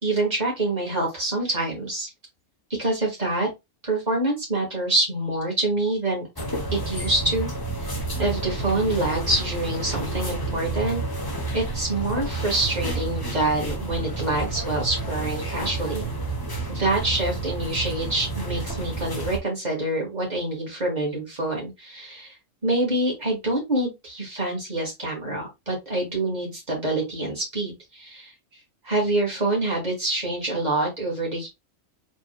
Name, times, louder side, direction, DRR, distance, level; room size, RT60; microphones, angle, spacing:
voice 1, 0.0-2.1 2.8-3.5 3.8-6.2 6.7-7.5 7.8-11.0 11.5-16.0 16.7-22.3 22.6-28.3 28.8-31.5, right 2 dB, 30° right, -2 dB, 2.1 m, -26 dB
sound 1, 6.4-19.4, right 2 dB, 20° left, 0.8 m, -30 dB
4.1 x 4.0 x 2.2 m, 0.21 s
omnidirectional pair, 1.4 m